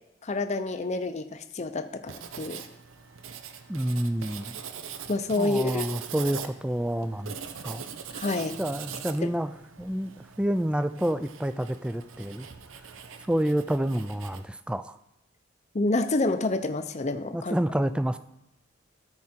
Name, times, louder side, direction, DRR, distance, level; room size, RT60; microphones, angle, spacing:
voice 1, 0.2-2.6 5.1-5.9 8.1-8.6 9.2-9.3 15.7-17.6, left 2 dB, 35° left, 9 dB, 0.6 m, -28 dB
Writing, 2.1-14.4, right 7 dB, 90° right, 0.7 m, -42 dB
voice 2, 3.7-4.5 5.4-7.3 7.6-7.8 8.6-9.5 9.8-12.5 13.3-14.9 17.3-18.2, right 1 dB, 5° right, 11 dB, 0.3 m, -28 dB
13.5 x 4.8 x 4.4 m, 0.89 s
head